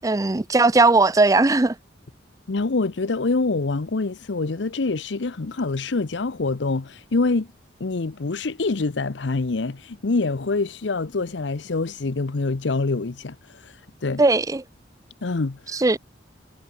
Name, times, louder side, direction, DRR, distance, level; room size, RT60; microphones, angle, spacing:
voice 1, 0.0-1.7 14.2-14.6 15.7-16.0, right 3 dB, 20° right, 0.5 m, -18 dB
voice 2, 2.5-7.5 7.8-14.2 15.2-15.8, left 3 dB, 80° left, 0.8 m, -25 dB
head